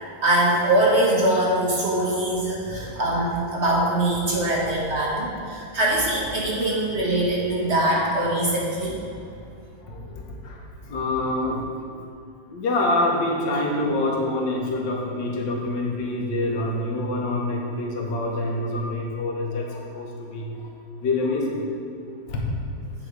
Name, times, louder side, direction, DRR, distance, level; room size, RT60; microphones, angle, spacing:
voice 1, 0.2-9.0, right 1 dB, 45° right, -4 dB, 1.1 m, -22 dB
voice 2, 2.6-3.0 5.0-5.1 5.5-5.7 7.5-7.7 9.8-11.7 12.5-20.7 21.0-21.6 22.3-22.5, left 2 dB, 85° left, -1 dB, 1.7 m, -26 dB
9.1 x 3.6 x 4.7 m, 2.5 s
omnidirectional pair, 1.9 m